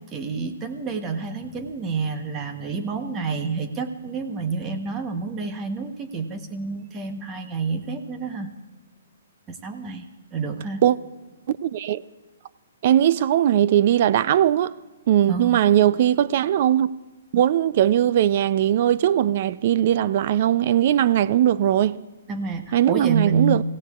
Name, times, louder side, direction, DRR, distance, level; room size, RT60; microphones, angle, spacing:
voice 1, 0.1-8.5 9.5-10.0 10.3-10.8 15.3-15.6 22.3-23.6, right 4 dB, 15° right, 1.0 m, -28 dB
voice 2, 11.5-12.0 12.8-14.7 15.1-16.9 17.3-22.0 22.7-23.6, right 11 dB, 40° right, 0.4 m, -19 dB
24.5 x 16.5 x 2.4 m
hypercardioid pair, 165°, 0 cm